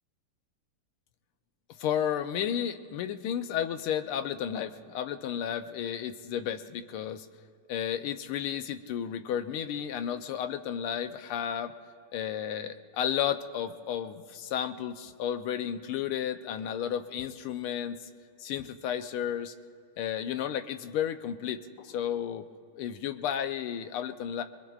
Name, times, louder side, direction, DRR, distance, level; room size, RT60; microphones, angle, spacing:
voice 1, 1.8-7.3 7.7-11.7 12.1-18.1 18.4-19.5 20.0-22.5 22.8-24.4, left 9 dB, 90° left, 9 dB, 1.6 m, -32 dB
24.5 x 22.0 x 2.4 m, 2.3 s
omnidirectional pair, 2.3 m